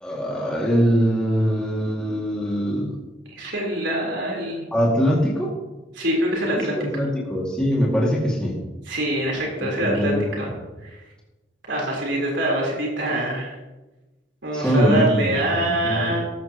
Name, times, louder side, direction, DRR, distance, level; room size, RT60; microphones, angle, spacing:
voice 1, 0.0-2.9 4.7-5.5 6.7-8.6 9.8-10.3 14.5-16.2, equal, 5° left, -5 dB, 2.1 m, -22 dB
voice 2, 3.4-4.7 5.9-6.8 8.9-10.5 10.8-11.0 11.7-13.6 14.4-16.2, right 1 dB, 70° right, -2 dB, 3.8 m, -24 dB
14.0 x 14.0 x 2.9 m, 1.1 s
head